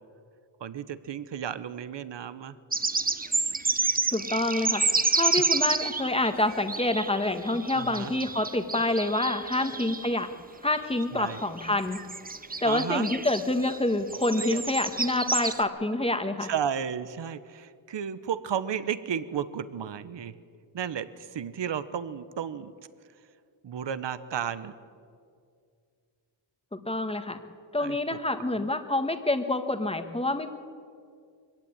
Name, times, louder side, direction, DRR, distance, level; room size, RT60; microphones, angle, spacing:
voice 1, 0.6-2.6 5.2-5.3 7.7-8.1 11.1-11.4 12.6-13.1 14.4-14.7 16.4-20.3 20.7-22.7 23.6-24.7 27.8-28.0 28.5-28.7, right 8 dB, 65° right, 14 dB, 1.1 m, -33 dB
sound 1, 2.7-10.2 10.7-11.0 11.3-13.8 14.1-15.6, right 3 dB, 20° right, 0.8 m, -29 dB
voice 2, 4.1-4.8 5.1-10.3 10.6-12.0 12.6-16.5 26.7-27.4 27.7-30.5, left 2 dB, 10° left, 8 dB, 1.5 m, -27 dB
24.0 x 16.5 x 9.8 m, 2.2 s
wide cardioid pair, 130°, 46 cm